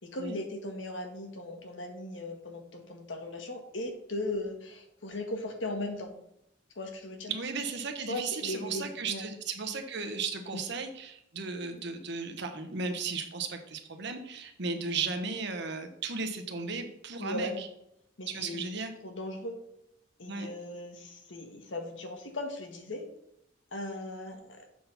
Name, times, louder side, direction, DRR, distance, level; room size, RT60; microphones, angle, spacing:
voice 1, 0.0-6.1 6.7-7.3 8.1-9.3 10.5-10.6 17.2-17.6 18.2-18.7 19.0-19.6 20.2-23.0 23.7-24.7, left 1 dB, 75° left, 4 dB, 1.5 m, -38 dB
voice 2, 7.3-17.7 18.3-18.9 20.3-20.5, right 4 dB, 65° right, 6 dB, 1.0 m, -35 dB
7.4 x 4.2 x 5.6 m, 0.78 s
head